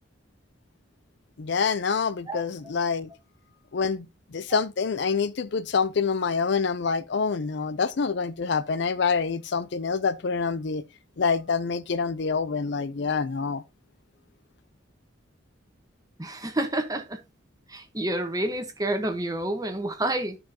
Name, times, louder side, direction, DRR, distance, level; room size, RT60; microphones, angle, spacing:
voice 1, 1.4-3.1 3.7-4.1 4.3-10.8 11.2-13.6, left 5 dB, 60° left, 0.5 m, -26 dB
voice 2, 16.2-17.2 17.7-20.4, right 1 dB, 20° right, 1.2 m, -29 dB
13.0 x 4.7 x 2.8 m
head